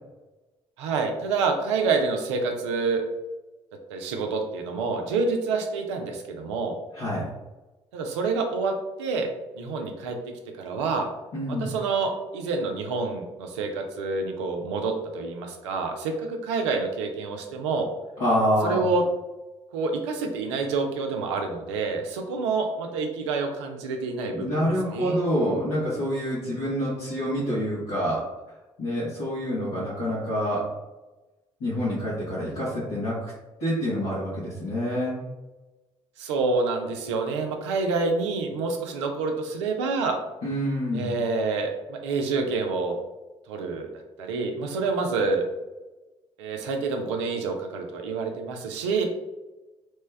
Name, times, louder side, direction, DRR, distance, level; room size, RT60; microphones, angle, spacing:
voice 1, 0.8-3.0 3.9-6.7 7.9-8.7 9.0-9.3 9.5-10.2 10.6-11.1 11.5-17.9 18.6-19.0 19.7-24.6 24.9-25.2 36.2-40.2 40.9-43.0 43.5-43.9 44.2-45.5 46.4-49.1, right 4 dB, 80° right, 3 dB, 0.5 m, -27 dB
voice 2, 6.9-7.3 11.3-11.7 18.2-18.8 24.3-28.2 28.8-30.7 31.6-33.3 33.6-35.2 40.4-41.1, equal, 75° left, -11 dB, 1.3 m, -27 dB
3.0 x 2.2 x 3.2 m, 1.1 s
hypercardioid pair, 50°, 15 cm